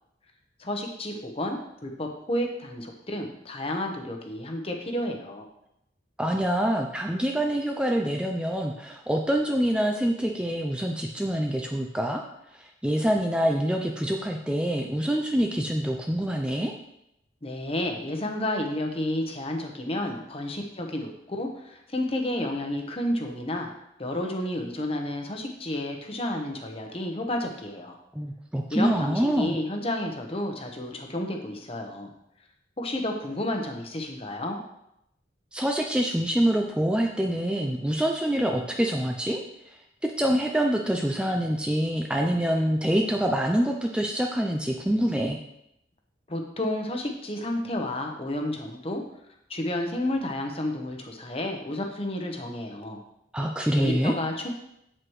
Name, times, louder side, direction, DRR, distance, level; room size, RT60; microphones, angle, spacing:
voice 1, 0.6-5.4 17.4-23.7 24.0-28.0 28.7-32.1 32.8-34.6 46.3-49.0 49.5-53.0 53.8-54.5, left 1 dB, 30° left, 3 dB, 1.0 m, -31 dB
voice 2, 6.2-12.2 12.5-16.7 28.1-29.6 35.5-39.4 39.7-45.4 53.3-54.1, right 1 dB, 5° right, 1 dB, 0.4 m, -26 dB
7.9 x 7.7 x 3.2 m, 0.80 s
head